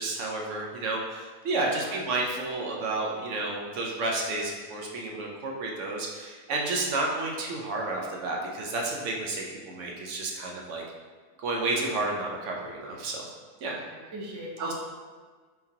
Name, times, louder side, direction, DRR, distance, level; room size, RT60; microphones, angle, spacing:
voice 1, 0.0-10.8 11.4-13.2 13.6-13.8 14.6-14.7, right 2 dB, 65° right, -1 dB, 0.9 m, -31 dB
voice 2, 13.8-14.7, right 1 dB, 30° right, -3 dB, 0.5 m, -40 dB
4.3 x 3.8 x 2.7 m, 1.5 s
omnidirectional pair, 1.4 m